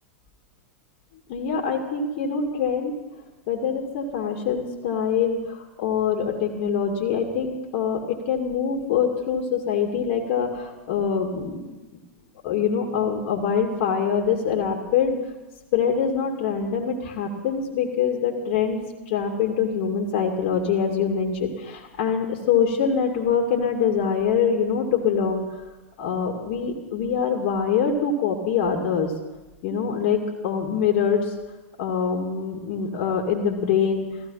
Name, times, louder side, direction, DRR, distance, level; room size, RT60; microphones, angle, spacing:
voice 1, 1.3-2.9 3.5-11.7 12.4-15.2 15.7-25.4 26.0-29.1 29.6-31.3 31.8-34.1, left 6 dB, 55° left, 1 dB, 2.4 m, -24 dB
16.0 x 14.5 x 5.7 m, 1.2 s
hypercardioid pair, 105°, 7 cm